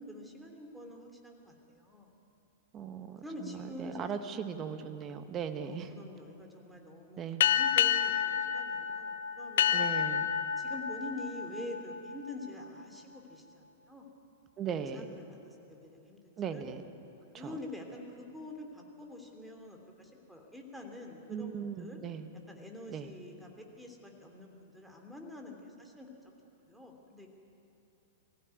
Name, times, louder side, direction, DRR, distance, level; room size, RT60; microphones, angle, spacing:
voice 1, 0.0-2.1 3.2-4.1 5.6-10.0 10.6-14.1 14.9-16.6 17.3-22.0 22.5-26.4 26.7-27.3, left 1 dB, 5° right, 2 dB, 3.3 m, -46 dB
voice 2, 2.7-5.9 7.2-7.4 9.7-10.3 14.6-15.0 16.4-16.8 17.3-17.5 21.3-22.3 22.9-23.1, right 7 dB, 30° right, 8 dB, 1.6 m, -38 dB
sound 1, 7.4-12.5, left 9 dB, 65° left, 0.8 m, -30 dB
23.0 x 15.0 x 9.5 m, 2.8 s
figure-of-eight pair, 100°, 0 cm